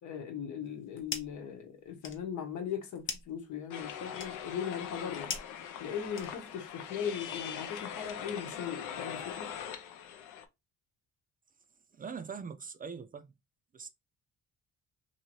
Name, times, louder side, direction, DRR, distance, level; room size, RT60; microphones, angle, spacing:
voice 1, 0.0-5.3 5.8-9.5, left 8 dB, 75° left, 1.0 m, -39 dB
sound 1, 0.6-1.5 1.8-6.7, left 5 dB, 40° left, 0.7 m, -43 dB
sound 2, 3.7-10.4, left 8 dB, 90° left, 0.5 m, -42 dB
voice 2, 11.9-13.3 13.7-13.9, right 6 dB, 30° right, 0.3 m, -42 dB
2.8 x 2.7 x 2.9 m
cardioid pair, 90°, 30 cm